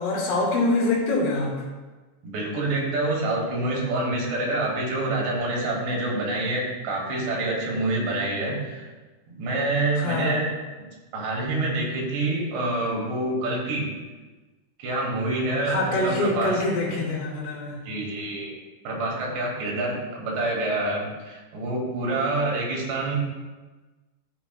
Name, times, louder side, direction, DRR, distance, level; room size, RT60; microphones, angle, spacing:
voice 1, 0.0-1.6 10.0-10.4 15.6-17.8, left 2 dB, 70° left, -4 dB, 4.7 m, -25 dB
voice 2, 2.2-8.8 9.3-10.5 11.1-13.9 14.8-16.6 17.9-18.6 18.9-23.2, right 2 dB, 65° right, -3 dB, 3.7 m, -27 dB
14.5 x 7.0 x 2.2 m, 1.3 s
omnidirectional pair, 5.9 m